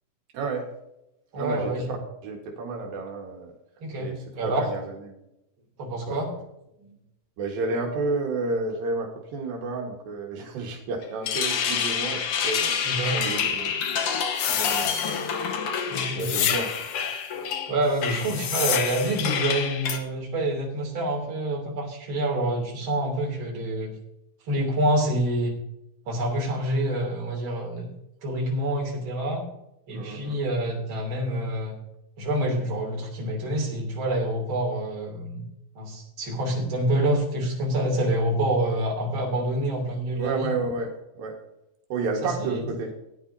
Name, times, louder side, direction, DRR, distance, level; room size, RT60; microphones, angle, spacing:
voice 1, 0.3-0.7 1.3-2.0 2.2-3.5 4.0-5.2 6.1-6.3 7.4-13.7 14.5-14.9 16.2-16.9 29.9-30.4 40.2-41.4 41.9-42.9, right 3 dB, 80° right, 0 dB, 3.3 m, -31 dB
voice 2, 1.3-1.9 3.8-4.6 5.8-6.3 6.8-7.0 12.8-13.2 15.9-16.5 17.7-23.9 24.5-25.5 26.1-27.9 28.2-29.4 29.9-31.8 32.2-35.4 35.7-40.6 42.2-42.6, right 1 dB, 35° right, -1 dB, 3.3 m, -27 dB
sound 1, 11.0-20.0, left 6 dB, 70° left, 1.4 m, -28 dB
sound 2, 14.3-15.5 16.2-17.1 18.0-19.3, left 9 dB, 90° left, 1.4 m, -29 dB
17.5 x 10.0 x 2.7 m, 0.87 s
omnidirectional pair, 4.0 m